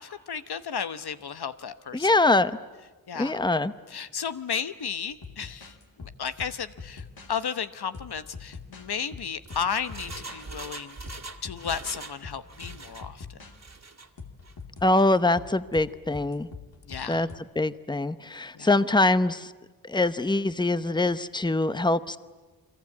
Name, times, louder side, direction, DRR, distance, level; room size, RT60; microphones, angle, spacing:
voice 1, 0.0-2.2 3.1-3.4 3.9-11.0 11.4-13.4 16.8-17.3 18.5-18.7, left 7 dB, 90° left, 11 dB, 1.0 m, -34 dB
voice 2, 1.9-2.5 3.2-3.7 14.8-16.5 17.1-17.3 17.6-19.5 19.8-22.2, left 2 dB, 10° left, 13 dB, 0.8 m, -23 dB
sound 1, 5.1-7.4 7.9-10.4 11.1-12.0 12.2-13.5 14.2-17.4, left 4 dB, 70° left, 2.5 m, -44 dB
Engine, 9.2-12.2 12.5-13.1 13.5-14.1 14.4-14.5, right 3 dB, 45° right, 2.2 m, -42 dB
30.0 x 23.0 x 8.5 m, 1.3 s
wide cardioid pair, 65°, 38 cm